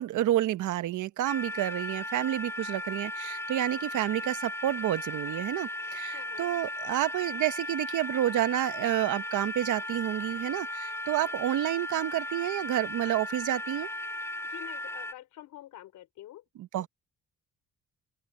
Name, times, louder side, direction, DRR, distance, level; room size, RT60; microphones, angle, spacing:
voice 1, 0.0-13.9 16.6-16.9, right 13 dB, 80° right, 1.1 m, -29 dB
sound 1, 1.2-15.1, left 1 dB, 10° left, 4.5 m, -36 dB
voice 2, 6.1-6.5 14.4-16.4, left 14 dB, 85° left, 4.1 m, -47 dB
open air
cardioid pair, 90°, 30 cm